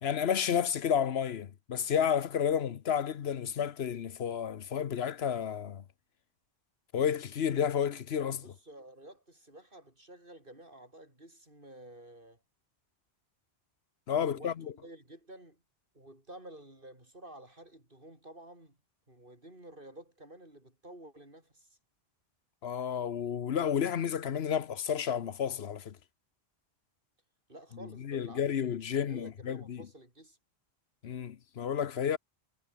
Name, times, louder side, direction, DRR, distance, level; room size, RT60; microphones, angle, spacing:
voice 1, 0.0-5.8 6.9-8.4 14.1-14.7 22.6-26.0 28.0-29.8 31.0-32.2, left 8 dB, 75° left, 1.1 m, -31 dB
voice 2, 8.4-12.4 14.3-15.6 15.9-18.8 19.1-21.7 27.5-28.4 28.9-30.4, right 1 dB, 55° right, 7.0 m, -51 dB
omnidirectional pair, 1.1 m